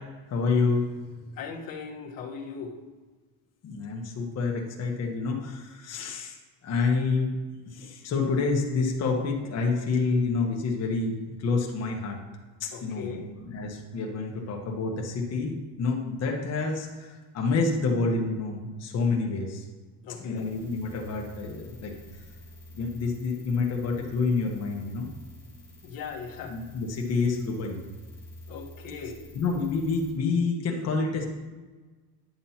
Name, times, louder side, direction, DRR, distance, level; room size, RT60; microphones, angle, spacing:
voice 1, 0.3-1.3 3.6-6.4 6.6-7.4 7.7-12.2 12.6-19.6 20.1-21.9 22.7-25.1 26.5-27.8 29.3-31.2, left 4 dB, 40° left, 1 dB, 1.2 m, -28 dB
voice 2, 1.4-2.8 12.7-13.3 20.0-20.5 25.8-26.6 28.5-29.2, left 5 dB, 65° left, -1 dB, 1.3 m, -38 dB
sound 1, 20.4-30.1, left 1 dB, 20° right, 2.3 m, -49 dB
10.0 x 7.5 x 2.8 m, 1.3 s
cardioid pair, 175°, 38 cm